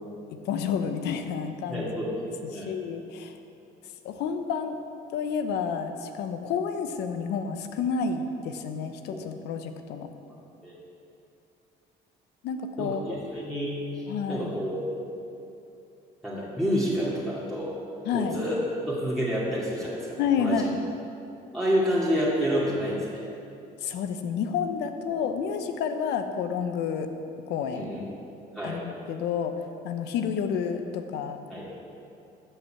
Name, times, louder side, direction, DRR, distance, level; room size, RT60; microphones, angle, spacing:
voice 1, 0.4-1.9 2.4-3.4 4.0-4.8 5.1-10.1 12.4-13.0 14.1-14.5 18.0-18.4 20.2-20.8 23.8-27.1 27.5-27.9 28.6-29.6 29.8-31.4, left 6 dB, 80° left, 7 dB, 0.9 m, -30 dB
voice 2, 1.7-2.1 2.5-2.7 9.1-9.2 10.6-10.8 12.8-14.0 14.3-15.1 16.2-17.7 18.1-20.7 21.5-23.2 27.7-28.0 28.5-28.8 31.5-31.7, equal, ahead, -8 dB, 2.4 m, -29 dB
13.0 x 5.7 x 7.8 m, 2.7 s
cardioid pair, 110°, 17 cm